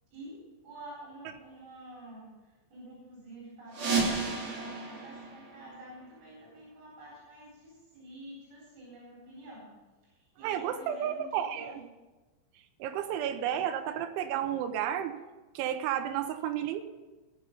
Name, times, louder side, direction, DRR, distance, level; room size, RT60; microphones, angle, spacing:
voice 1, 0.1-9.7 10.0-11.9, right 1 dB, 65° right, -6 dB, 6.3 m, -48 dB
sound 1, 3.7-6.3, right 4 dB, 45° right, 2.7 m, -33 dB
voice 2, 10.4-11.8 12.8-15.1 15.6-16.8, right 10 dB, 85° right, 7 dB, 3.2 m, -32 dB
19.0 x 6.9 x 5.3 m, 1.2 s
omnidirectional pair, 5.3 m